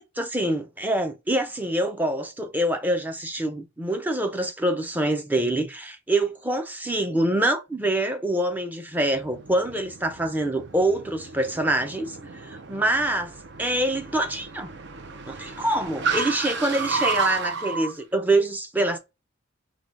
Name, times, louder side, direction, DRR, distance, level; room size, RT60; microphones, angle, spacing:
voice 1, 0.0-12.2 12.4-13.3 13.6-14.7 15.3-19.0, right 1 dB, 10° right, 0.5 m, -25 dB
Car, 9.0-17.9, right 4 dB, 60° right, 0.6 m, -32 dB
4.7 x 2.2 x 3.7 m
head